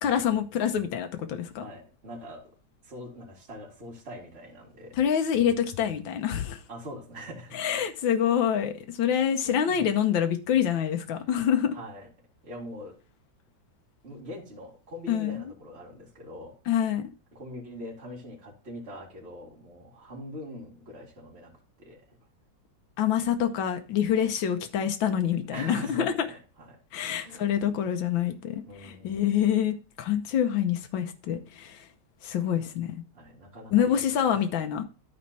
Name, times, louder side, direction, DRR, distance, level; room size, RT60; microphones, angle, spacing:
voice 1, 0.0-1.6 4.9-6.6 7.5-11.8 15.1-15.4 16.7-17.1 23.0-26.1 26.9-31.9 32.2-33.0 33.7-34.8, left 9 dB, 85° left, 1.6 m, -26 dB
voice 2, 1.6-2.5 2.8-4.9 6.7-7.6 9.4-9.8 11.7-12.1 12.4-13.0 14.0-16.6 17.3-21.5 21.8-22.0 25.5-26.8 27.2-27.8 28.6-29.3 33.1-34.3, equal, 35° right, 2.5 m, -43 dB
11.5 x 4.4 x 4.1 m
omnidirectional pair, 2.0 m